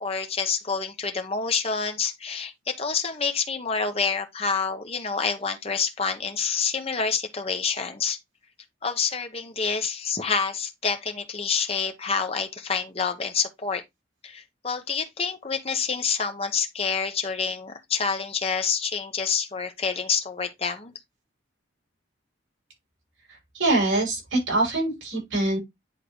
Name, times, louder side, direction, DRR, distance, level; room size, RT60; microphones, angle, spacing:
voice 1, 0.0-8.2 8.8-13.8 14.2-20.9, left 5 dB, 30° left, 0.9 m, -27 dB
voice 2, 23.5-25.6, right 2 dB, 75° right, 5.6 m, -24 dB
10.0 x 3.7 x 3.1 m
head